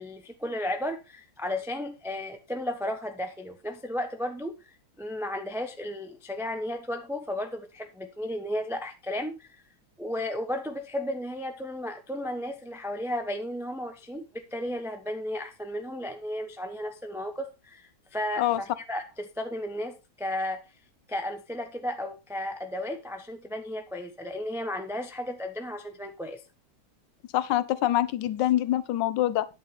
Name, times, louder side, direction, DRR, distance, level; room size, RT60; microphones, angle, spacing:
voice 1, 0.0-9.6 10.0-18.5 18.8-20.6 21.1-26.4, left 1 dB, ahead, 0.6 m, -34 dB
voice 2, 27.3-29.5, left 13 dB, 65° left, 1.3 m, -25 dB
11.0 x 7.3 x 4.3 m
omnidirectional pair, 2.3 m